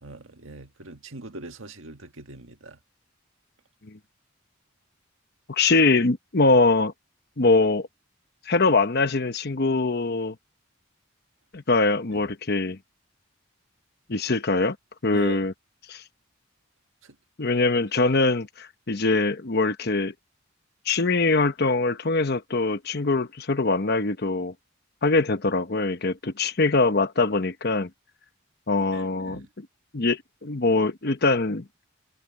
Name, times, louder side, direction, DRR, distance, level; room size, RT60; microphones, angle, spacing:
voice 1, 0.0-2.8 12.1-12.3 15.1-15.4 17.0-17.1 28.8-29.5, right 3 dB, 75° right, 1.7 m, -41 dB
voice 2, 5.5-6.9 7.4-7.9 8.5-10.3 11.5-12.8 14.1-14.8 15.0-15.5 15.9-16.0 17.4-20.1 20.9-24.5 25.0-27.9 28.7-29.4 29.9-31.6, left 3 dB, 50° left, 1.0 m, -23 dB
head